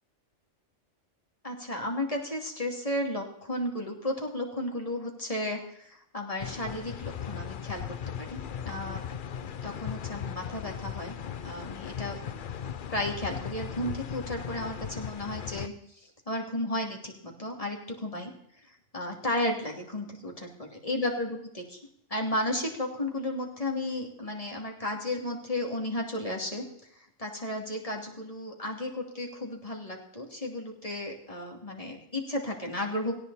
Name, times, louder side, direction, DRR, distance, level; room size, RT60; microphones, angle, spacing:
voice 1, 1.4-9.0 9.4-11.2 11.4-12.2 12.9-18.3 18.6-21.8 22.1-33.2, left 1 dB, 30° left, 0 dB, 3.1 m, -34 dB
sound 1, 6.4-15.7, left 8 dB, 50° left, 0.8 m, -38 dB
18.0 x 16.5 x 4.3 m, 0.72 s
omnidirectional pair, 1.2 m